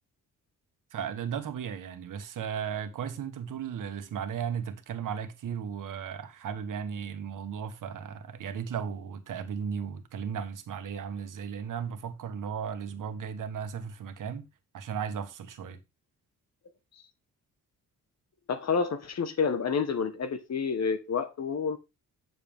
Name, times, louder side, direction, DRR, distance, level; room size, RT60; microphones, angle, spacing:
voice 1, 0.9-14.5 14.7-15.8, right 7 dB, 70° right, 1.5 m, -35 dB
voice 2, 18.5-21.8, left 5 dB, 50° left, 1.4 m, -29 dB
8.9 x 6.8 x 3.6 m
cardioid pair, 95°, 33 cm